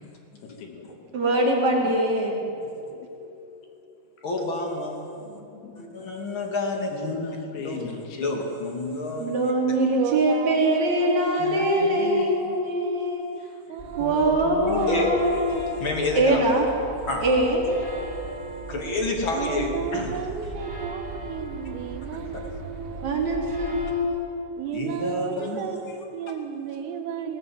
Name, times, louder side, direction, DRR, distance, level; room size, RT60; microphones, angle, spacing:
voice 1, 0.4-0.9 6.9-8.3 11.4-12.6 13.0-13.1 14.0-15.3, left 5 dB, 85° left, 4 dB, 5.1 m, -35 dB
voice 2, 1.1-2.3 9.2-13.2 14.0-15.6 16.1-16.7 17.2-17.6 23.0-24.3, right 1 dB, 35° right, -2 dB, 4.5 m, -23 dB
voice 3, 2.5-4.0 5.1-5.8, left 5 dB, 55° left, 2 dB, 3.8 m, -50 dB
voice 4, 4.2-5.1 5.8-7.1 7.6-7.8 8.2-9.5 14.9-16.4 17.1-17.3 18.7-20.2 24.7-25.6, left 2 dB, 35° left, 1 dB, 2.3 m, -29 dB
voice 5, 9.9-12.7 13.7-14.2 19.3-23.2 24.6-27.4, right 7 dB, 80° right, 6 dB, 4.2 m, -34 dB
sound 1, 13.8-23.9, right 2 dB, 20° right, 5.4 m, -38 dB
20.0 x 19.5 x 9.6 m, 2.7 s
omnidirectional pair, 5.9 m